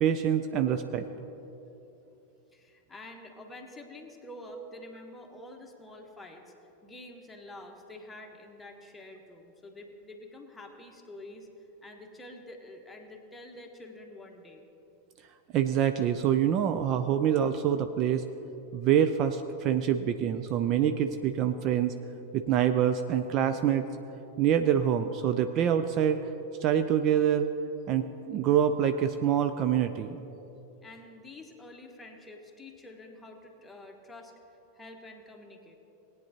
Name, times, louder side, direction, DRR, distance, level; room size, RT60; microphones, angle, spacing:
voice 1, 0.0-1.0 15.5-18.2 18.7-21.9 22.3-23.9 24.4-26.2 26.6-27.5 27.9-30.2, right 9 dB, 35° right, 9 dB, 0.4 m, -26 dB
voice 2, 2.5-6.5 6.8-11.5 11.8-14.6 30.8-34.4 34.7-35.7, left 1 dB, 10° left, 2 dB, 1.2 m, -47 dB
18.5 x 9.4 x 2.9 m, 2.9 s
figure-of-eight pair, 90°, 0 cm